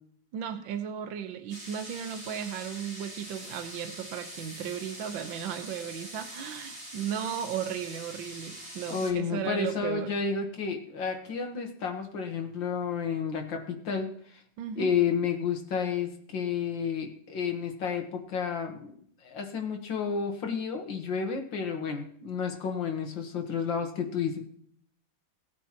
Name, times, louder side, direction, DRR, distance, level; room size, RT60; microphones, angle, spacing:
voice 1, 0.3-10.1 14.6-15.0, right 8 dB, 75° right, 8 dB, 1.6 m, -35 dB
sound 1, 1.5-9.1, right 1 dB, 15° right, 2.8 m, -44 dB
voice 2, 8.9-14.4 14.8-18.9 19.2-24.4, left 6 dB, 70° left, 4 dB, 1.9 m, -31 dB
18.5 x 9.2 x 2.9 m, 0.62 s
omnidirectional pair, 2.2 m